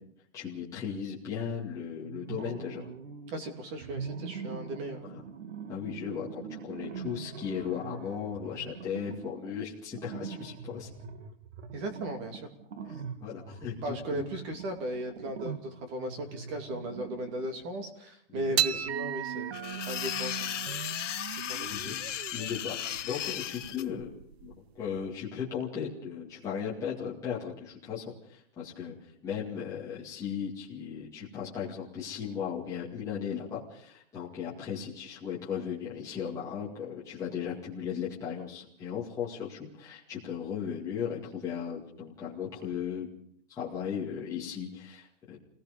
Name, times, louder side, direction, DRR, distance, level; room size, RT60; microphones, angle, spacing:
voice 1, 0.3-2.9 5.1-5.2 5.7-10.9 12.9-14.3 18.3-18.6 21.7-22.1 22.3-24.1 24.4-43.1 43.5-45.4, left 7 dB, 10° left, -7 dB, 2.3 m, -37 dB
sound 1, 2.0-3.4 3.8-17.7, right 6 dB, 85° right, 2.5 m, -43 dB
voice 2, 3.3-5.0 11.7-12.5 13.8-21.0 21.3-21.8, right 1 dB, 25° right, 6 dB, 2.6 m, -37 dB
sound 2, 18.5-25.1, right 11 dB, 60° right, 0.8 m, -36 dB
sound 3, 19.5-23.8, left 11 dB, 85° left, 1.2 m, -36 dB
28.0 x 18.0 x 5.3 m, 0.65 s
hypercardioid pair, 180°, 36 cm